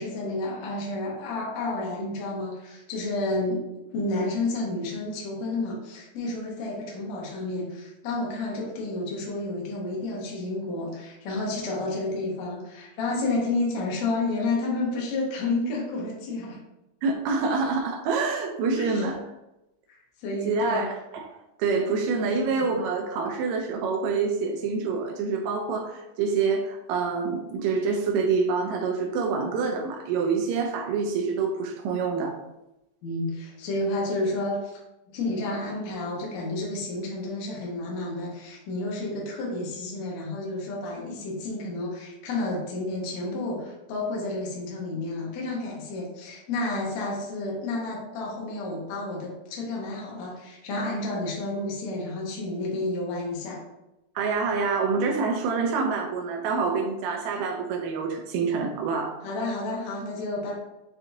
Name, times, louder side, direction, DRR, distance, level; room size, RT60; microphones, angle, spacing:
voice 1, 0.0-3.6 3.9-16.6 18.7-19.1 19.9-20.8 33.0-34.7 35.1-53.6 59.2-60.6, left 2 dB, 70° left, -3 dB, 2.1 m, -30 dB
voice 2, 17.0-19.2 20.4-32.4 54.1-59.2, right 4 dB, 80° right, 2 dB, 1.7 m, -26 dB
6.8 x 2.7 x 2.6 m, 0.92 s
omnidirectional pair, 3.5 m